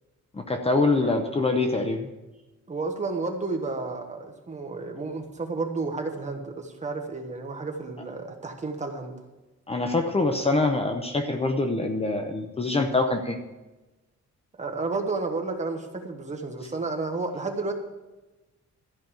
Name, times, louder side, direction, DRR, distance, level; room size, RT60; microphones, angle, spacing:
voice 1, 0.5-2.1 9.7-13.4, left 3 dB, 20° left, 5 dB, 0.7 m, -24 dB
voice 2, 2.7-9.1 14.6-17.7, right 3 dB, 25° right, 4 dB, 1.3 m, -31 dB
13.5 x 5.3 x 9.0 m, 1.1 s
wide cardioid pair, 165°, 30 cm